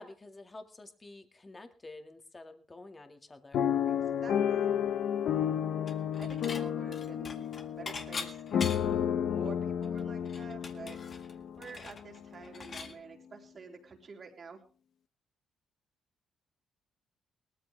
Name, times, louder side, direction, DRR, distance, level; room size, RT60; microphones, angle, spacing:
voice 1, 0.0-3.7, left 2 dB, 25° left, 6 dB, 2.1 m, -49 dB
sound 1, 3.5-11.6 12.2-12.3 12.6-12.9, left 9 dB, 70° left, 0.9 m, -31 dB
voice 2, 3.9-4.7 6.2-8.7 9.2-11.0 11.6-14.6, right 5 dB, 45° right, 1 dB, 3.8 m, -49 dB
Dishes pots and pans / Chink clink, 5.9-6.6 6.9-9.0 9.5-9.6 9.8-12.9, left 4 dB, 40° left, 1.9 m, -42 dB
19.0 x 14.0 x 3.5 m, 0.39 s
cardioid pair, 90°, 0 cm